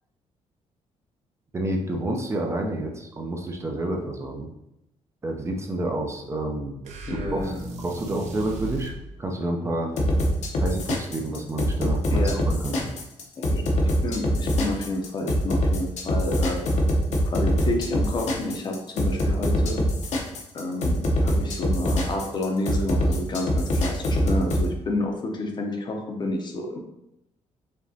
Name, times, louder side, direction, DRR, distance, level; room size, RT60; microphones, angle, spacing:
voice 1, 1.5-4.5 5.2-6.8 7.1-7.5 7.8-8.9 9.2-9.9 10.6-12.9, right 1 dB, 25° right, 1 dB, 0.5 m, -29 dB
sound 1, 6.8-9.0, right 2 dB, 75° right, 0.7 m, -35 dB
voice 2, 7.1-7.6 12.1-12.4 13.4-16.6 17.2-19.8 20.5-26.8, left 2 dB, 40° left, 2 dB, 0.7 m, -30 dB
sound 2, 10.0-24.7, equal, 70° left, 0.8 m, -23 dB
5.0 x 2.9 x 2.8 m, 0.85 s
cardioid pair, 140°, 12 cm